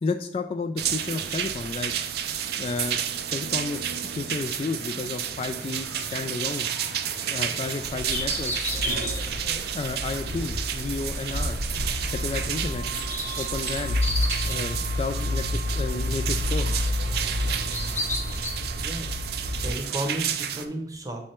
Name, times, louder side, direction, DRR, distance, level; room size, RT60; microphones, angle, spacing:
voice 1, 0.0-1.9 2.6-3.0 3.3-6.7 7.3-8.7 9.7-11.6 12.1-12.9 13.4-14.0 14.4-16.7, left 3 dB, 35° left, 7 dB, 0.3 m, -32 dB
sound 1, 0.8-20.7, right 9 dB, 60° right, 0.5 m, -31 dB
sound 2, 5.2-18.5, left 1 dB, 10° left, 0.7 m, -37 dB
sound 3, 7.8-19.7, left 1 dB, 85° right, 1.2 m, -30 dB
voice 2, 18.8-19.2 19.6-21.3, right 1 dB, 20° right, 4 dB, 0.8 m, -33 dB
7.3 x 3.2 x 4.3 m, 0.68 s
head